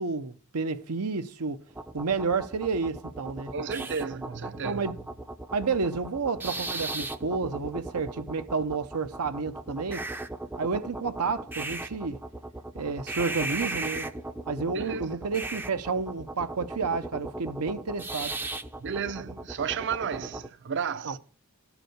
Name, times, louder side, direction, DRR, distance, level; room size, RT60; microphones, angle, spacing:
voice 1, 0.0-1.6 1.9-3.5 4.6-4.9 5.5-10.0 10.6-12.2 12.7-14.1 14.5-18.3 21.0-21.2, right 4 dB, 90° right, 0.8 m, -30 dB
sound 1, 1.7-20.5, right 2 dB, 10° right, 0.4 m, -37 dB
voice 2, 3.5-5.0 14.7-15.2 18.8-21.2, right 6 dB, 55° right, 0.6 m, -33 dB
12.5 x 5.0 x 6.5 m
head